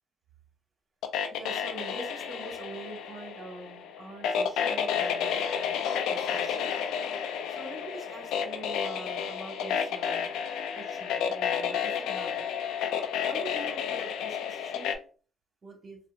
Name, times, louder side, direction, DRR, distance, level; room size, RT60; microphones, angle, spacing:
sound 1, 1.0-14.9, left 7 dB, 90° left, 0.4 m, -31 dB
voice 1, 1.3-5.8 6.1-6.7 7.5-10.3 10.8-12.4 13.3-14.9 15.6-16.0, right 2 dB, 40° right, 1 dB, 1.5 m, -44 dB
4.2 x 2.0 x 2.5 m, 0.38 s
cardioid pair, 90°, 0 cm